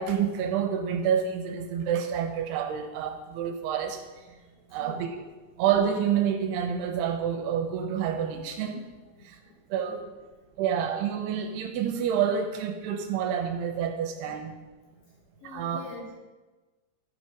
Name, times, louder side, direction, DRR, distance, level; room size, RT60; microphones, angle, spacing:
voice 1, 0.0-4.0 4.7-5.2 5.6-8.9 9.2-9.4 9.7-10.0 10.6-14.5 15.4-15.8, right 8 dB, 80° right, 5 dB, 2.6 m, -28 dB
voice 2, 4.4-5.1 9.2-9.5 9.9-10.1 15.4-16.2, left 4 dB, 60° left, -4 dB, 3.4 m, -45 dB
12.0 x 5.3 x 5.0 m, 1.2 s
omnidirectional pair, 4.9 m